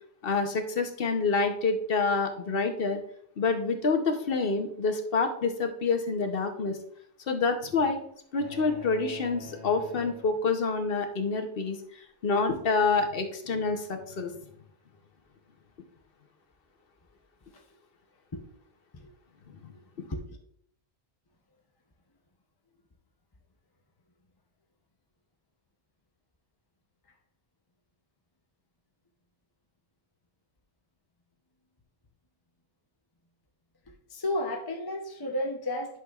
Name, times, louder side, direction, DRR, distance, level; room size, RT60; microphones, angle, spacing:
voice 1, 0.2-3.0 3.4-6.8 7.3-8.0 8.3-11.8 12.2-14.3, left 4 dB, 60° left, 6 dB, 1.0 m, -27 dB
sound 1, 8.4-10.9, left 4 dB, 80° right, 1.9 m, -46 dB
voice 2, 34.1-36.0, left 1 dB, 25° left, 2 dB, 0.6 m, -32 dB
11.0 x 6.1 x 2.4 m, 0.68 s
omnidirectional pair, 1.1 m